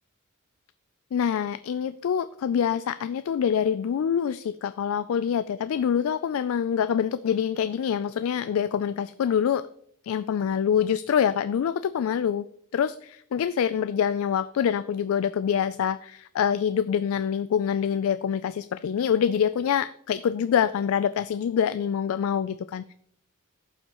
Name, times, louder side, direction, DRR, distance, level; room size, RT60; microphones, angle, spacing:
voice 1, 1.1-9.7 10.0-12.5 12.7-22.9, left 8 dB, 65° left, 13 dB, 0.3 m, -25 dB
15.5 x 5.7 x 3.0 m, 0.67 s
head